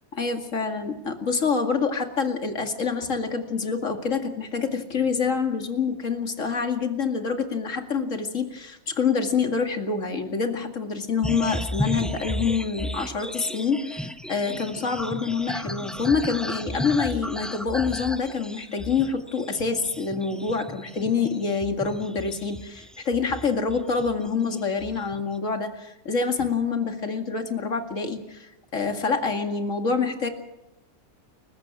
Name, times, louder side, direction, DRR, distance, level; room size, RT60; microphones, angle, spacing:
voice 1, 0.2-30.3, left 5 dB, 55° left, 5 dB, 2.6 m, -26 dB
sound 1, 11.2-24.3 24.6-25.3, equal, ahead, 0.5 m, -34 dB
29.5 x 15.5 x 6.2 m, 0.92 s
omnidirectional pair, 1.6 m